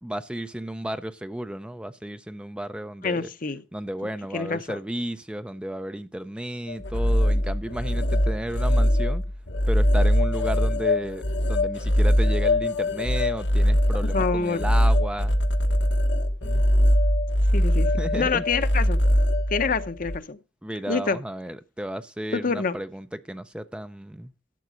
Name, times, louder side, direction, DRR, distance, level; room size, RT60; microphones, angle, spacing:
voice 1, 0.0-3.3 3.7-9.2 9.7-15.4 16.4-16.6 18.0-18.4 20.6-24.3, right 1 dB, 5° right, 0.5 m, -33 dB
voice 2, 3.0-3.6 4.3-4.8 14.1-14.6 17.5-17.9 18.2-19.0 19.5-20.4 20.9-21.2 22.3-22.8, left 4 dB, 50° left, 0.8 m, -26 dB
sound 1, 6.7-20.2, equal, 75° left, 1.3 m, -22 dB
12.5 x 7.3 x 5.0 m
head